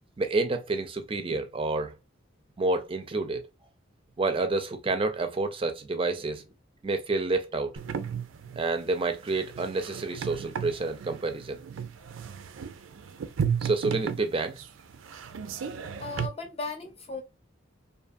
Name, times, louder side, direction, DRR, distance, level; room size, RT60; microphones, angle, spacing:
voice 1, 0.2-2.0 2.6-3.4 4.2-6.5 6.8-7.7 8.6-11.6 13.6-14.6 15.8-15.9, right 3 dB, 30° right, 0.5 m, -29 dB
sound 1, 7.8-16.3, right 7 dB, 80° right, 0.4 m, -34 dB
voice 2, 16.0-17.2, left 3 dB, 30° left, 0.8 m, -36 dB
2.5 x 2.4 x 2.5 m
head